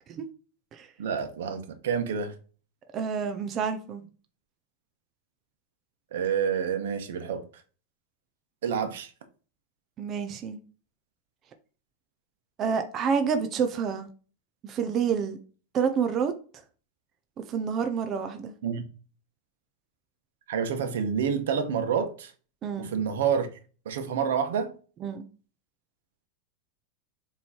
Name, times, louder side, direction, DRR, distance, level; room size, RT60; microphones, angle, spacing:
voice 1, 1.0-2.3 6.1-7.4 8.6-9.1 18.6-18.8 20.5-22.3 22.8-23.5 23.8-24.7, right 7 dB, 80° right, 1.2 m, -28 dB
voice 2, 2.9-4.0 10.0-10.6 12.6-14.1 14.6-15.4 15.7-16.3 17.5-18.5 22.6-22.9 25.0-25.2, right 6 dB, 20° right, 0.5 m, -28 dB
7.3 x 3.2 x 4.2 m
supercardioid pair, 175°, 0 cm